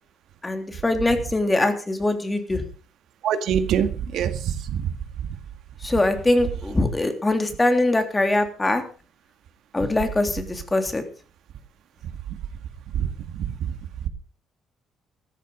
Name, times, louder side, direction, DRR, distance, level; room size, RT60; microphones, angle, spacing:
voice 1, 0.4-2.6 5.8-8.8 9.7-11.0, left 2 dB, 15° left, 6 dB, 3.3 m, -22 dB
voice 2, 3.2-4.8 13.0-13.1, right 8 dB, 75° right, 10 dB, 2.0 m, -24 dB
15.0 x 14.0 x 5.2 m, 0.36 s
cardioid pair, 130°, 0 cm